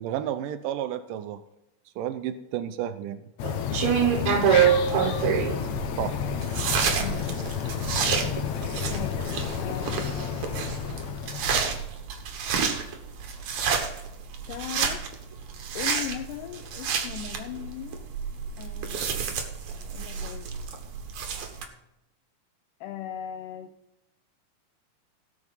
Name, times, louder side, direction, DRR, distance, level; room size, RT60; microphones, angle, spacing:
voice 1, 0.0-1.4 2.0-3.2 6.0-6.2, right 11 dB, 90° right, 10 dB, 2.3 m, -31 dB
sound 1, 3.4-11.8, left 8 dB, 70° left, 2.1 m, -31 dB
sound 2, 3.4-21.6, right 7 dB, 65° right, 2.5 m, -28 dB
voice 2, 4.1-4.6 7.0-7.5 8.9-10.9 14.5-15.1 15.8-18.1 18.6-19.4 19.7-20.5 22.8-23.7, left 11 dB, 85° left, 5 dB, 2.3 m, -39 dB
17.0 x 6.4 x 5.5 m, 0.88 s
omnidirectional pair, 3.7 m